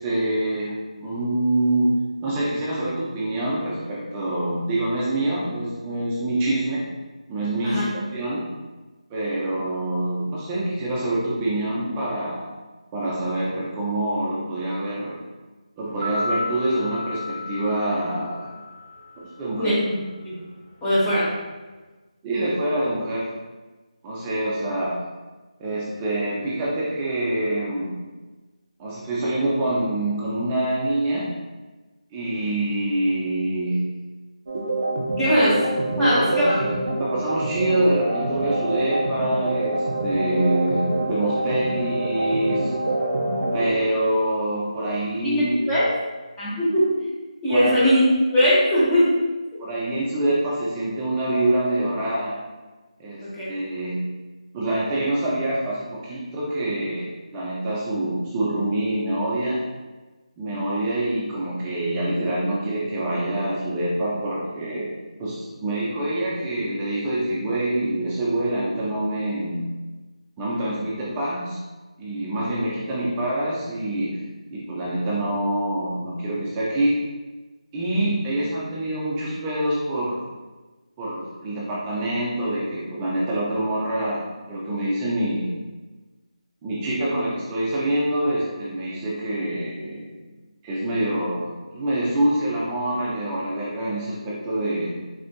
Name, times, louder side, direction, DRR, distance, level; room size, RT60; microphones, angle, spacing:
voice 1, 0.0-6.8 7.3-8.4 9.1-12.4 12.9-15.2 15.8-18.5 19.2-19.8 22.2-23.3 24.0-25.0 25.6-28.0 28.8-31.3 32.1-33.9 36.0-42.7 43.5-45.7 47.5-47.8 49.6-52.4 53.0-54.2 54.5-59.6 60.4-64.9 65.2-69.7 70.4-71.6 72.0-74.2 74.5-77.0 77.7-80.2 81.0-85.6 86.6-90.2 90.6-94.9, right 1 dB, 15° right, -6 dB, 0.4 m, -25 dB
sound 1, 15.9-20.0 20.3-20.4, left 2 dB, 35° right, 0.9 m, -33 dB
voice 2, 20.8-21.3 35.2-35.6 36.0-36.5 45.2-45.8 46.4-46.9 47.4-48.0 48.3-49.2 49.5-49.6 53.2-53.4, equal, 10° left, -11 dB, 0.8 m, -20 dB
sound 2, 34.5-43.7, right 2 dB, 60° right, 0.5 m, -26 dB
3.6 x 2.4 x 2.2 m, 1.2 s
figure-of-eight pair, 160°, 4 cm